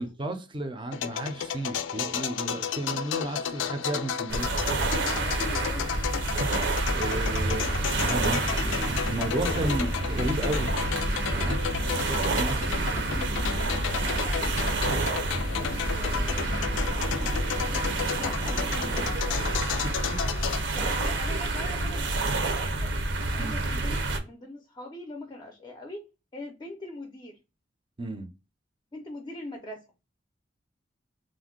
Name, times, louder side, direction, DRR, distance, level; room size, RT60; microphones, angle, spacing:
voice 1, 0.0-4.7 7.0-10.7 11.3-11.6 11.9-13.2 19.4-19.5 19.8-19.9 23.4-23.6 28.0-28.3, right 2 dB, 25° right, 0.5 m, -33 dB
sound 1, 0.9-20.6, left 8 dB, 90° left, 0.3 m, -33 dB
sound 2, 4.3-24.2, right 2 dB, 70° right, 0.6 m, -28 dB
voice 2, 4.7-6.0 8.8-9.8 13.8-17.7 18.1-20.0 20.7-22.9 23.3-26.1 26.3-27.4 28.9-29.9, left 2 dB, 25° left, 0.5 m, -42 dB
sound 3, 7.8-19.1, right 1 dB, 85° right, 1.0 m, -40 dB
2.5 x 2.1 x 3.7 m
head